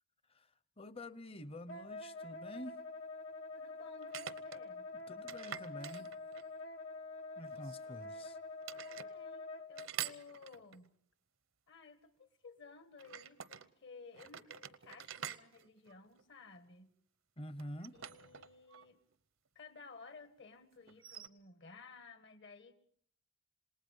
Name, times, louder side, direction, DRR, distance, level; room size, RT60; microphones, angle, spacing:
voice 1, 0.8-2.8 5.1-6.1 7.4-8.4 17.4-18.0, left 1 dB, 30° left, 16 dB, 0.8 m, -48 dB
Wind instrument woodwind instrument, 1.7-9.9, left 3 dB, 90° left, 1.3 m, -46 dB
sound 1, 1.9-2.0 4.0-4.6 5.3-6.6 7.5-8.3 8.6-9.1 9.8-10.9 13.0-13.7 14.1-16.6 17.6-18.9 19.1-19.2 20.9-21.3, right 10 dB, 80° right, 0.8 m, -47 dB
voice 2, 3.6-4.9 8.8-10.9 11.7-16.9 17.9-19.0 19.5-22.7, left 4 dB, 60° left, 11 dB, 1.6 m, -56 dB
27.5 x 19.0 x 5.5 m, 0.63 s
head